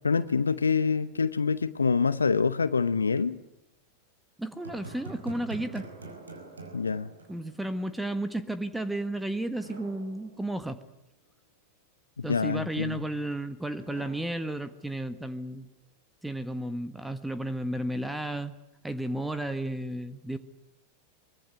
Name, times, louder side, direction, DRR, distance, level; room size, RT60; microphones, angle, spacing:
voice 1, 0.0-3.4 6.7-7.1 12.2-13.0, left 5 dB, 75° left, 14 dB, 0.9 m, -26 dB
voice 2, 4.4-5.9 7.3-10.8 12.2-15.7 16.2-18.5 18.8-20.4, right 1 dB, 5° right, 12 dB, 1.5 m, -33 dB
sound 1, 4.6-7.9 8.2-8.3 9.5-11.0 13.8-15.3, right 2 dB, 75° right, 5.5 m, -46 dB
24.0 x 22.5 x 9.5 m, 0.86 s
figure-of-eight pair, 90°, 0 cm